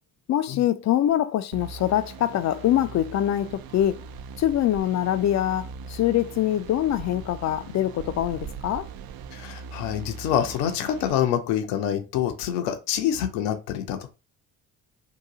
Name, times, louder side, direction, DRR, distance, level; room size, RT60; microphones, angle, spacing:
voice 1, 0.3-4.1 4.4-8.9, left 12 dB, 40° left, 0.4 m, -24 dB
sound 1, 1.5-11.1, right 4 dB, 55° right, 0.5 m, -41 dB
sound 2, 3.4-5.3 5.6-9.5, right 7 dB, 75° right, 0.9 m, -44 dB
voice 2, 9.3-14.1, left 10 dB, 75° left, 0.7 m, -26 dB
2.9 x 2.6 x 3.7 m
hypercardioid pair, 50°, 44 cm